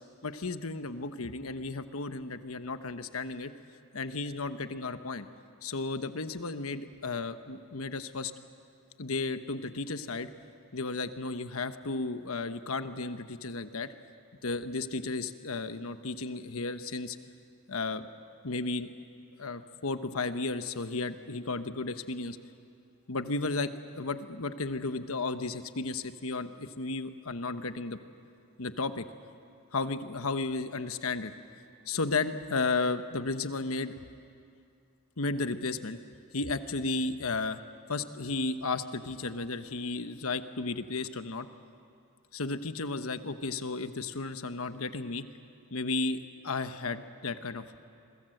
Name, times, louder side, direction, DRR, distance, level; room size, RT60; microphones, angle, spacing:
voice 1, 0.2-3.5 3.9-5.3 5.6-8.3 9.0-10.3 10.7-13.9 14.4-17.2 17.7-18.1 18.4-18.9 19.4-22.4 23.1-28.0 28.6-29.1 29.7-31.3 31.9-34.1 35.2-36.0 36.3-37.6 37.9-41.5 42.3-45.2 45.7-47.8, left 3 dB, 85° left, 10 dB, 1.1 m, -33 dB
29.0 x 22.5 x 7.9 m, 2.5 s
head